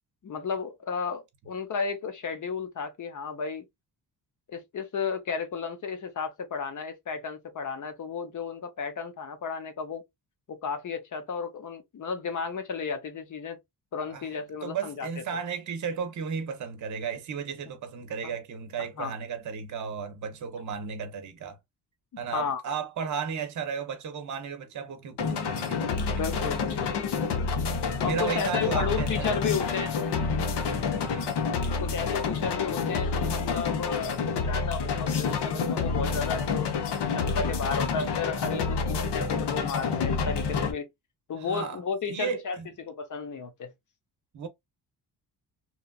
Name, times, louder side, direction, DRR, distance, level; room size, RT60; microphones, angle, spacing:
voice 1, 0.2-3.6 4.5-10.0 10.5-13.6 13.9-15.1 18.2-18.3 19.0-19.1 22.3-22.6 26.1-26.9 28.0-29.9 31.8-40.9 41.3-43.7, left 5 dB, 45° left, 0.8 m, -33 dB
voice 2, 14.6-21.6 22.2-26.5 27.6-29.4 31.0-31.3 41.4-41.8 42.1-42.7 44.3-44.5, right 6 dB, 45° right, 0.7 m, -34 dB
sound 1, 25.2-40.7, left 5 dB, 75° left, 0.9 m, -28 dB
3.0 x 2.4 x 2.2 m
wide cardioid pair, 135°, 41 cm